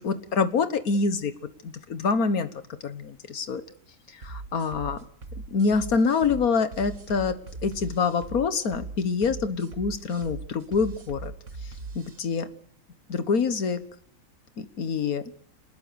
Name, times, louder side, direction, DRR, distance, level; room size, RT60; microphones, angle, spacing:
voice 1, 0.0-1.3 1.6-2.5 2.8-3.6 4.1-5.0 5.5-7.3 7.6-11.3 12.0-12.5 13.1-13.8 14.6-15.2, left 5 dB, 85° left, 11 dB, 1.8 m, -26 dB
sound 1, 4.2-12.2, right 3 dB, 60° right, 2.0 m, -40 dB
27.0 x 19.5 x 7.0 m, 0.69 s
omnidirectional pair, 1.5 m